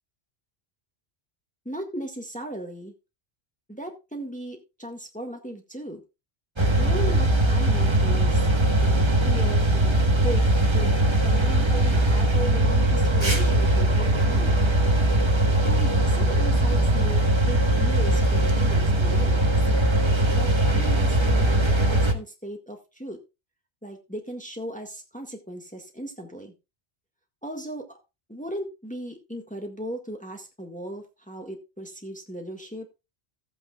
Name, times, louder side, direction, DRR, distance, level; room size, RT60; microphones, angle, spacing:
voice 1, 1.6-2.9 3.7-6.0 6.8-8.5 8.8-10.4 10.7-11.0 11.2-14.6 15.6-19.7 20.3-23.2 23.8-26.5 27.4-28.0 28.3-33.0, right 1 dB, 5° left, 3 dB, 1.8 m, -37 dB
sound 1, 6.6-22.1, right 1 dB, 25° right, 1.2 m, -21 dB
15.0 x 9.0 x 2.3 m, 0.26 s
omnidirectional pair, 1.1 m